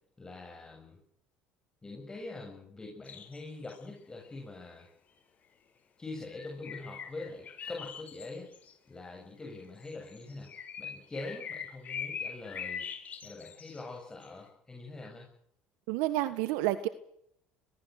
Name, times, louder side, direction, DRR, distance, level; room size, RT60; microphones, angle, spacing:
voice 1, 0.2-1.0 1.8-4.9 6.0-8.5 8.9-10.5 10.8-12.8 13.2-15.3, left 2 dB, 20° left, 0 dB, 7.9 m, -44 dB
sound 1, 3.0-3.4 3.7-3.8 4.2-4.4 6.3-8.7 9.6-13.8 14.2-14.3, left 7 dB, 40° left, 8.0 m, -42 dB
voice 2, 15.9-16.9, right 15 dB, 80° right, 12 dB, 1.5 m, -29 dB
23.0 x 22.5 x 6.6 m, 0.72 s
supercardioid pair, 105°, 4 cm